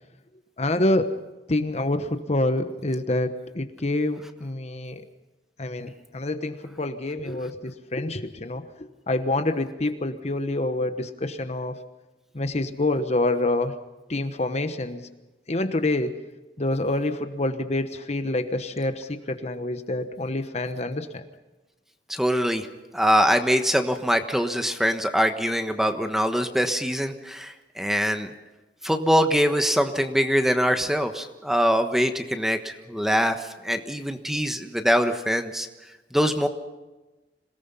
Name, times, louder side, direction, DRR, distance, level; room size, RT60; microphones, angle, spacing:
voice 1, 0.6-1.1 1.5-5.0 5.6-8.6 9.1-11.8 12.3-13.7 14.1-15.0 15.5-16.2 16.6-21.2, left 2 dB, 40° left, 8 dB, 1.1 m, -27 dB
voice 2, 22.1-22.7 22.9-28.3 28.8-35.7 36.1-36.5, equal, ahead, 7 dB, 1.2 m, -23 dB
26.5 x 18.0 x 5.6 m, 1.1 s
head